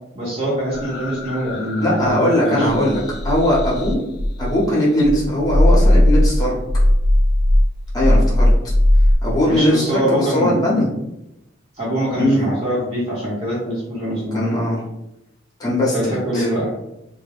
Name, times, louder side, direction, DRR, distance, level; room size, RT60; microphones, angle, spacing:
voice 1, 0.1-2.9 9.5-10.6 11.8-14.4 15.9-16.7, equal, 30° right, -8 dB, 0.8 m, -23 dB
sound 1, 0.7-4.6 5.0-9.2, left 1 dB, 55° left, 0.4 m, -18 dB
voice 2, 1.8-4.0 4.4-6.5 7.9-8.5 9.2-10.9 12.2-12.4 14.0-14.8 15.6-16.5, left 1 dB, 20° left, -5 dB, 0.7 m, -19 dB
2.2 x 2.0 x 3.3 m, 0.88 s
head